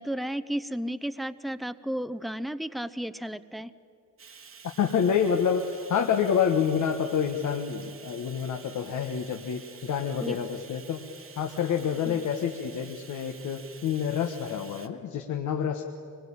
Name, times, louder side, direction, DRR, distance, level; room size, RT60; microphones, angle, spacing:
voice 1, 0.0-3.7 10.2-10.4 12.0-12.2, equal, ahead, 13 dB, 0.8 m, -33 dB
Bathtub (filling or washing), 4.2-14.9, right 6 dB, 45° right, 1.5 m, -49 dB
voice 2, 4.6-15.8, left 7 dB, 80° left, 3 dB, 1.5 m, -28 dB
24.5 x 21.0 x 8.8 m, 2.5 s
cardioid pair, 90°, 30 cm